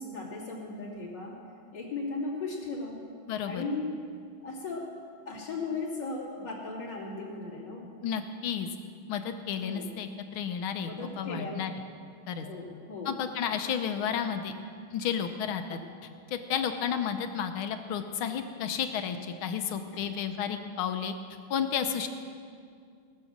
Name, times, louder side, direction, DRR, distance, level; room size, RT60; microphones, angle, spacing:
voice 1, 0.0-1.3 1.7-3.0 3.4-3.9 4.4-4.8 5.2-7.9 9.6-9.9 10.8-11.5 12.4-13.1 15.7-15.8 19.9-20.1, left 3 dB, 55° left, -5 dB, 3.5 m, -36 dB
voice 2, 3.3-3.6 8.0-8.7 9.1-10.9 11.2-11.7 12.3-12.5 13.0-14.5 14.9-15.8 16.3-21.1 21.5-22.1, left 8 dB, 85° left, 8 dB, 1.6 m, -32 dB
19.5 x 6.7 x 7.2 m, 2.2 s
omnidirectional pair, 2.3 m